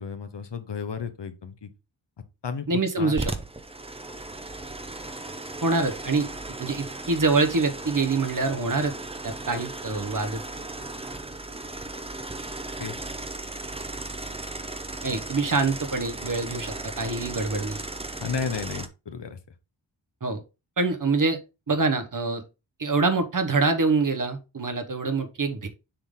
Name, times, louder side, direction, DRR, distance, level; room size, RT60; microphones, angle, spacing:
voice 1, 0.0-1.7 2.4-3.1 12.8-13.0 18.2-19.4, left 6 dB, 65° left, 1.0 m, -33 dB
voice 2, 2.7-3.3 5.6-6.3 6.6-8.9 9.2-10.4 15.0-17.8 20.2-20.4 20.8-21.4 21.7-22.4 22.8-25.7, right 3 dB, 45° right, 1.1 m, -25 dB
sound 1, 3.1-18.9, right 2 dB, 15° right, 0.6 m, -36 dB
6.9 x 3.8 x 3.6 m
wide cardioid pair, 95°, 45 cm